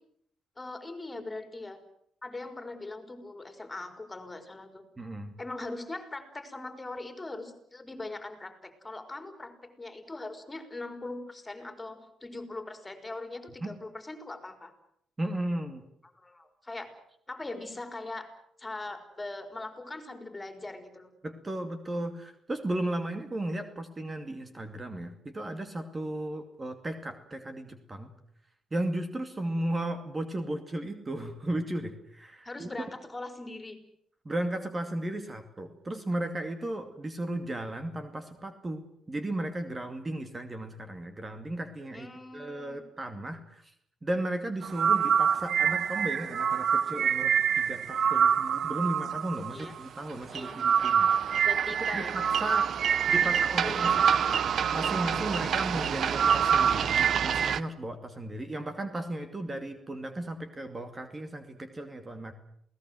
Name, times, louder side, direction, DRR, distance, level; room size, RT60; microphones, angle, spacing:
voice 1, 0.6-1.8 2.2-4.8 5.4-14.7 16.2-16.9 17.3-18.3 18.6-21.1 32.4-33.8 41.9-42.8 49.5-49.7 50.3-50.6 51.5-52.2 53.2-53.3 53.6-54.1, left 2 dB, 20° left, 8 dB, 4.3 m, -41 dB
voice 2, 5.0-5.3 13.6-13.8 15.2-15.8 21.2-28.1 28.7-32.7 34.2-43.7 44.0-51.1 51.9-52.7 53.1-54.1 54.7-62.3, right 1 dB, 25° right, 7 dB, 2.6 m, -35 dB
sound 1, 44.6-57.6, right 7 dB, 60° right, 0.9 m, -26 dB
28.0 x 18.0 x 7.9 m, 0.69 s
cardioid pair, 90°, 0 cm